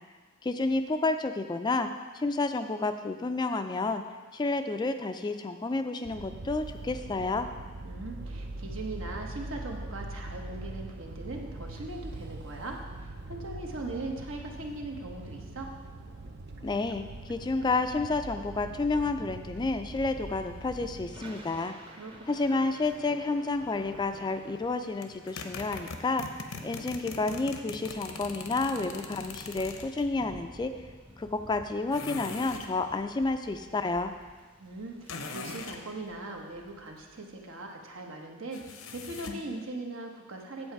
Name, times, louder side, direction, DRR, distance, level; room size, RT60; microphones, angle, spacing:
voice 1, 0.4-1.9 2.1-4.0 4.3-7.5 16.6-21.7 22.3-30.7 31.2-34.1, left 3 dB, 20° left, 8 dB, 0.3 m, -30 dB
sound 1, 6.0-21.1, right 2 dB, 55° right, 0.6 m, -42 dB
voice 2, 7.8-15.7 21.9-22.6 34.6-40.7, right 2 dB, 75° right, 1 dB, 1.2 m, -40 dB
Thunder / Rain, 20.2-37.8, right 1 dB, 25° right, 0.8 m, -53 dB
sound 2, 25.0-30.1 31.9-32.7 35.1-35.8 38.5-39.5, left 4 dB, 90° left, 0.8 m, -41 dB
7.9 x 7.7 x 4.7 m, 1.4 s
head